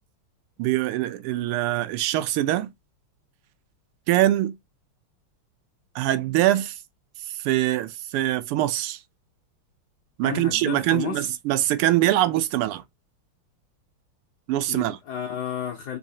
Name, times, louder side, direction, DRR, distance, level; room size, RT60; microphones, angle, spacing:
voice 1, 0.6-2.7 4.1-4.5 5.9-6.8 7.3-9.0 10.2-12.8 14.5-15.0, right 14 dB, 90° right, 1.5 m, -23 dB
voice 2, 10.2-11.3 14.7-16.0, left 8 dB, 75° left, 0.9 m, -32 dB
3.9 x 2.7 x 2.6 m
omnidirectional pair, 2.4 m